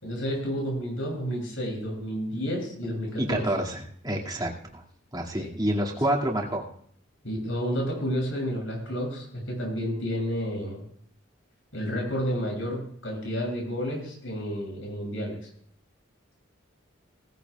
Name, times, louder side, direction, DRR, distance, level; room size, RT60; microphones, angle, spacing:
voice 1, 0.0-3.5 5.4-5.5 7.2-10.8 11.7-15.4, equal, 75° left, -1 dB, 7.3 m, -30 dB
voice 2, 3.2-4.8 5.1-6.6, right 1 dB, 20° right, -2 dB, 2.3 m, -28 dB
19.0 x 15.0 x 2.4 m, 0.63 s
head